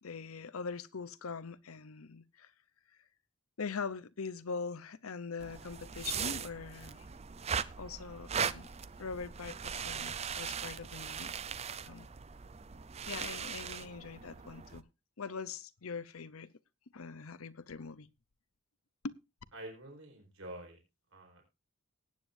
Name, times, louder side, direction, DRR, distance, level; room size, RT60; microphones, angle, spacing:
voice 1, 0.0-2.5 3.6-7.0 7.8-8.7 9.0-11.3 11.8-12.1 13.1-14.8 15.2-16.5 16.9-18.1 19.0-19.1, left 5 dB, 85° left, 0.7 m, -42 dB
sound 1, 5.4-14.8, right 7 dB, 30° right, 0.5 m, -39 dB
voice 2, 19.5-20.8 21.1-21.4, right 1 dB, 70° right, 4.8 m, -47 dB
19.0 x 9.1 x 2.6 m
head